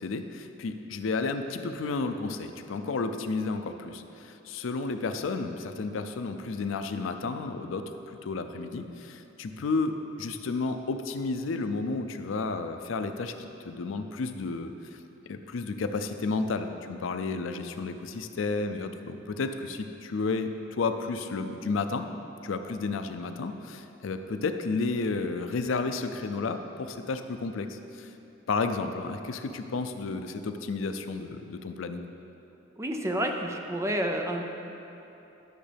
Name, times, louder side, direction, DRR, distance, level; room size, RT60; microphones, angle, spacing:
voice 1, 0.0-7.9 8.2-15.0 15.3-22.1 22.4-28.1 28.5-32.1, left 3 dB, 85° left, 8 dB, 0.5 m, -32 dB
voice 2, 32.8-34.4, right 1 dB, 15° right, 3 dB, 0.5 m, -29 dB
11.0 x 6.3 x 3.4 m, 2.9 s
head